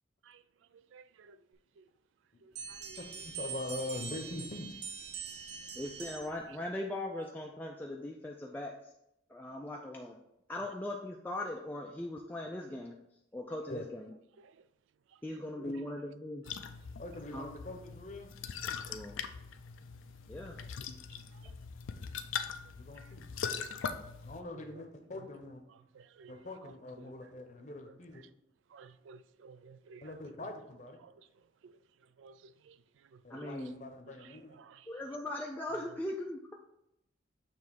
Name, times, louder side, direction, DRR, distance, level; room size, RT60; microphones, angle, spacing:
voice 1, 0.9-1.4 1.8-1.9 2.4-3.0 14.4-14.5 26.0-26.3 28.7-30.0 31.0-31.1 31.6-31.7 32.2-32.8 33.3-33.5 34.1-34.3 34.6-34.8, right 4 dB, 80° right, 0.3 m, -55 dB
sound 1, 2.5-6.5, right 6 dB, 55° right, 0.9 m, -43 dB
voice 2, 3.0-4.7 13.7-13.9 15.6-15.7 17.0-18.3 22.8-23.3 24.2-25.6 26.3-28.2 30.0-31.0 33.2-34.6, left 2 dB, 40° left, 0.8 m, -43 dB
voice 3, 5.7-8.8 9.3-10.2 10.5-13.0 13.3-14.1 15.2-16.4 17.3-17.5 18.7-19.2 20.3-20.6 33.3-33.7 34.9-36.5, left 1 dB, 10° left, 0.3 m, -39 dB
sound 2, 16.4-24.4, left 6 dB, 90° left, 0.5 m, -41 dB
7.1 x 3.1 x 4.6 m
head